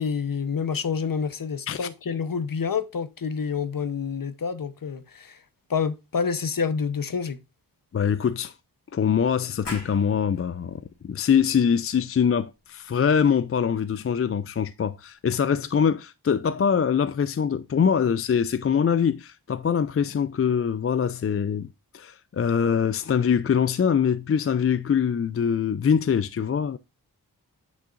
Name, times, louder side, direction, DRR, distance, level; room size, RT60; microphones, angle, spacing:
voice 1, 0.0-5.4 5.7-7.4, left 6 dB, 55° left, 0.9 m, -28 dB
voice 2, 7.9-8.5 8.9-21.7 21.9-26.8, left 7 dB, 35° left, 0.4 m, -23 dB
sound 1, 9.6-15.0, left 3 dB, 85° left, 2.4 m, -45 dB
8.4 x 6.4 x 2.5 m
wide cardioid pair, 75°, 40 cm